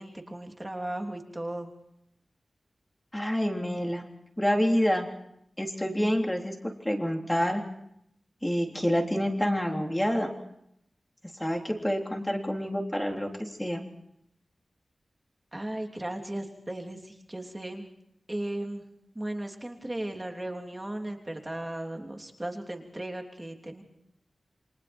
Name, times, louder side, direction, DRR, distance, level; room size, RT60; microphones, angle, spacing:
voice 1, 0.0-1.7 15.5-17.9 18.3-18.8 19.1-23.8, right 1 dB, 15° right, 2 dB, 3.2 m, -36 dB
voice 2, 3.1-4.0 4.4-5.1 5.6-7.6 8.4-10.3 11.4-13.8, equal, 10° left, 2 dB, 3.6 m, -27 dB
29.5 x 25.0 x 4.5 m, 0.75 s
wide cardioid pair, 115°, 0 cm